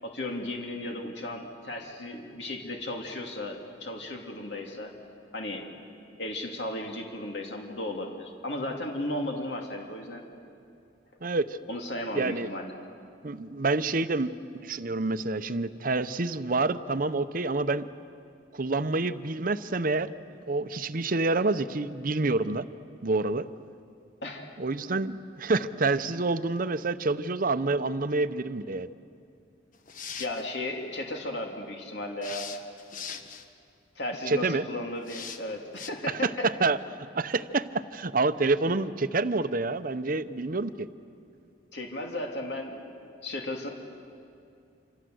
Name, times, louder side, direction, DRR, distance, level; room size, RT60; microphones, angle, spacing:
voice 1, 0.0-4.9 5.3-5.7 6.2-10.2 11.7-12.7 24.2-24.5 30.2-32.5 34.0-36.5 41.7-43.7, left 1 dB, 65° left, 1 dB, 2.6 m, -35 dB
voice 2, 11.2-11.6 12.1-12.5 13.2-17.9 18.5-20.1 20.5-22.7 23.0-23.5 24.6-28.9 34.3-34.6 36.1-36.8 37.1-40.9, right 3 dB, 50° right, 12 dB, 0.8 m, -28 dB
sound 1, 29.7-30.4 32.2-33.5 35.1-35.4 35.8-35.9, left 6 dB, 45° left, 1.4 m, -40 dB
27.0 x 26.5 x 7.9 m, 2.5 s
head